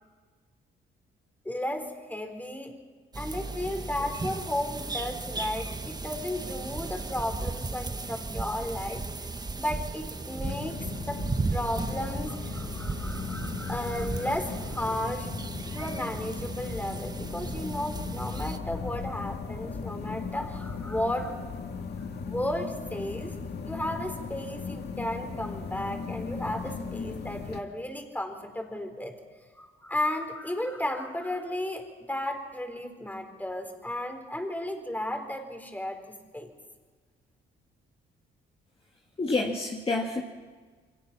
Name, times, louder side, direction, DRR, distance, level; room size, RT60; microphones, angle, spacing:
voice 1, 1.4-2.8 3.2-9.1 9.6-11.2 11.5-21.3 22.2-23.4 23.6-29.2 29.6-36.5, left 1 dB, 10° left, 5 dB, 3.8 m, -34 dB
sound 1, 3.1-18.6, right 3 dB, 20° right, 1.2 m, -36 dB
sound 2, 10.4-27.6, left 5 dB, 55° left, 2.4 m, -37 dB
voice 2, 39.2-40.2, left 3 dB, 30° left, 0 dB, 2.3 m, -28 dB
28.0 x 23.5 x 5.9 m, 1.5 s
cardioid pair, 90°, 20 cm